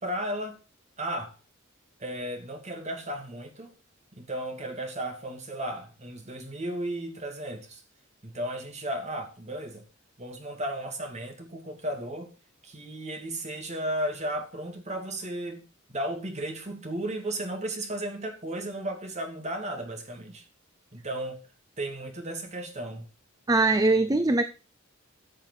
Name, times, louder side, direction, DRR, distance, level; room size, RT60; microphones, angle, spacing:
voice 1, 0.0-0.6 1.0-1.3 2.0-3.7 4.1-7.8 8.2-9.8 10.2-12.3 12.6-15.6 15.9-20.4 20.9-21.4 21.8-23.1, right 1 dB, 35° right, 2.6 m, -34 dB
voice 2, 23.5-24.4, right 2 dB, 20° right, 0.7 m, -21 dB
14.0 x 7.4 x 4.7 m
head